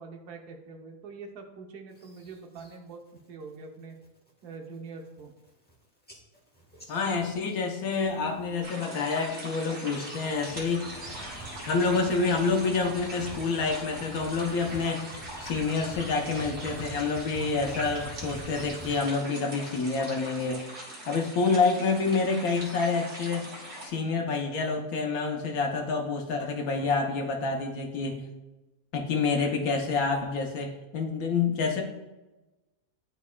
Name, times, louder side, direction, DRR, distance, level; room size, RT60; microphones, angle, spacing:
voice 1, 0.0-4.0 4.4-5.3, right 4 dB, 90° right, 3 dB, 1.3 m, -44 dB
sound 1, 1.9-2.8 3.2-3.5 3.9-4.3 4.7-4.8 5.1-5.7 6.1-8.6 8.9-9.4 9.9-19.0, right 2 dB, 5° left, 0.9 m, -47 dB
voice 2, 6.9-10.9 11.6-15.1 15.4-20.6 21.1-23.5 23.8-28.2 28.9-31.8, left 4 dB, 70° left, 3 dB, 1.2 m, -28 dB
sound 2, 8.6-23.9, right 1 dB, 45° right, 1.5 m, -41 dB
10.5 x 4.1 x 2.2 m, 1.1 s
omnidirectional pair, 1.6 m